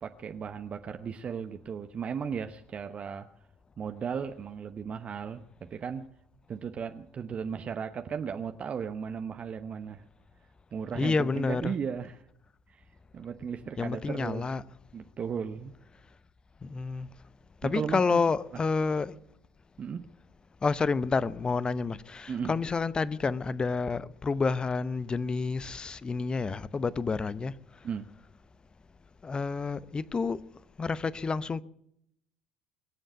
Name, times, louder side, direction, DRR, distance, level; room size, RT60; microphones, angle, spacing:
voice 1, 0.0-3.3 3.8-6.1 6.5-10.1 10.7-12.2 12.7-12.8 13.1-14.6 14.9-15.7 17.6-18.2 19.8-20.0 22.3-22.6 27.8-28.1, right 7 dB, 40° right, 0.9 m, -36 dB
voice 2, 10.9-11.7 13.8-14.6 16.6-17.1 17.6-19.1 20.6-27.5 29.2-30.4 30.8-31.6, left 4 dB, 25° left, 0.8 m, -29 dB
22.5 x 7.8 x 8.2 m
hypercardioid pair, 60°, 3 cm